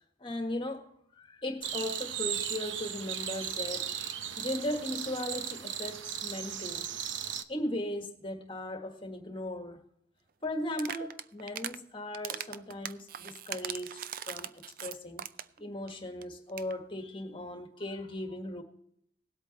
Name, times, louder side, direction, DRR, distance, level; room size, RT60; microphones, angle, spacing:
voice 1, 0.2-0.9 1.2-3.9 4.4-6.9 7.5-9.8 10.4-14.0 14.2-15.3 15.6-18.6, left 1 dB, 25° left, 1.6 m, -37 dB
sound 1, 1.6-7.4, right 9 dB, 85° right, 0.8 m, -36 dB
sound 2, 10.7-11.8 12.1-15.6 15.9-16.0 16.2-16.3 16.5-16.7, right 10 dB, 50° right, 0.5 m, -40 dB
18.5 x 8.2 x 4.1 m
head